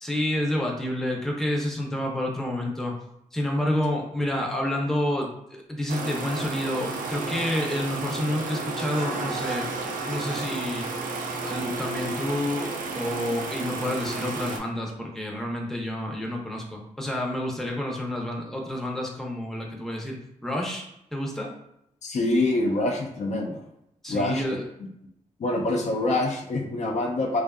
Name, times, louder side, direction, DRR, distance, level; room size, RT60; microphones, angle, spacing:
voice 1, 0.0-2.9 3.3-9.7 10.1-11.0 11.4-20.8 21.1-21.5 24.0-24.6, left 1 dB, 5° left, -1 dB, 0.6 m, -29 dB
sound 1, 5.9-14.6, right 3 dB, 80° right, 0.4 m, -32 dB
voice 2, 22.0-23.6 24.1-24.4 25.4-27.4, left 2 dB, 55° left, 0 dB, 0.4 m, -25 dB
2.5 x 2.4 x 2.2 m, 0.79 s
cardioid pair, 80°, 14 cm